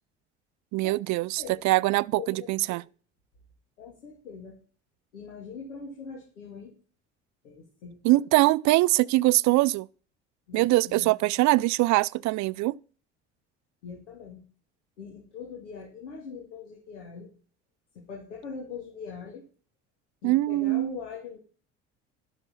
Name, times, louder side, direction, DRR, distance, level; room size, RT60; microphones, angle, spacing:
voice 1, 0.7-2.8 8.0-9.9 10.5-12.8 20.2-21.0, right 19 dB, 55° right, 0.5 m, -23 dB
voice 2, 2.2-2.8 3.8-4.6 5.1-6.7 7.4-8.0 10.5-11.1 13.8-14.4 15.0-17.3 17.9-19.4 20.2-21.4, left 5 dB, 80° left, 2.6 m, -42 dB
12.0 x 8.0 x 5.5 m
hypercardioid pair, 65°, 35 cm